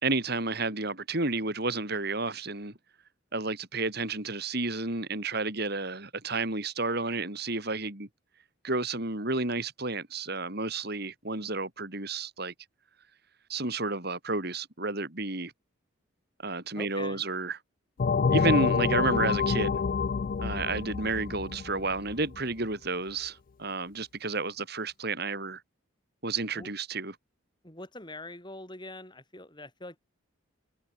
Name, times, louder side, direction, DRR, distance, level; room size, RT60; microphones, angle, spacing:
voice 1, 0.0-2.7 3.3-8.1 8.6-12.5 13.5-15.5 16.4-17.6 18.3-19.8 20.4-25.6 26.2-27.2, right 3 dB, 50° right, 3.6 m, -31 dB
voice 2, 16.8-17.2 26.6-26.7 27.6-30.0, left 2 dB, 20° left, 7.8 m, -43 dB
sound 1, 18.0-22.4, left 5 dB, 40° left, 0.3 m, -27 dB
head